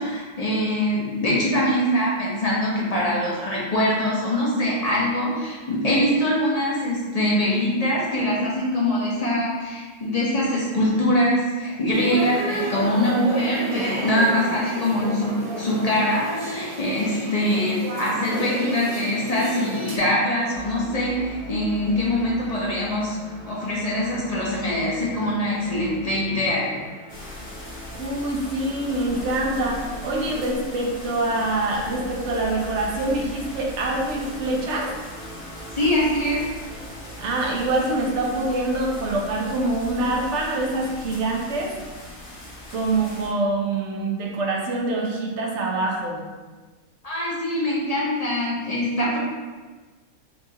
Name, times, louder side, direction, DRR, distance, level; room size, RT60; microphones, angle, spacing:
voice 1, 0.0-23.2 23.5-26.7 35.7-36.5 47.0-49.2, left 1 dB, 35° left, -5 dB, 0.8 m, -23 dB
sound 1, 11.9-20.0, right 1 dB, 40° right, 0.6 m, -31 dB
sound 2, 20.5-40.0, right 2 dB, 10° left, 0.8 m, -42 dB
sound 3, 27.1-43.3, left 2 dB, 85° left, 1.6 m, -40 dB
voice 2, 28.0-34.9 37.2-41.7 42.7-46.2, right 2 dB, 65° right, -1 dB, 0.9 m, -25 dB
5.4 x 2.5 x 2.8 m, 1.3 s
omnidirectional pair, 1.4 m